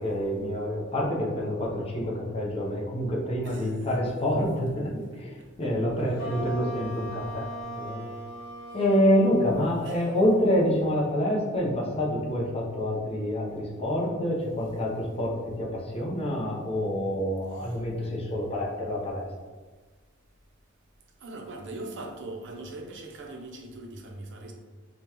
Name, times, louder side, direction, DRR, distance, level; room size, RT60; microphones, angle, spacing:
voice 1, 0.0-4.9 5.1-8.0 8.7-19.3, equal, 30° left, -4 dB, 0.8 m, -27 dB
voice 2, 3.4-3.9 5.1-5.5 8.7-8.8 9.8-10.1 17.5-17.9 21.2-24.5, right 2 dB, 60° right, 1 dB, 0.6 m, -41 dB
sound 1, 6.2-12.9, right 1 dB, 50° left, 1.2 m, -41 dB
5.2 x 2.3 x 2.9 m, 1.3 s
head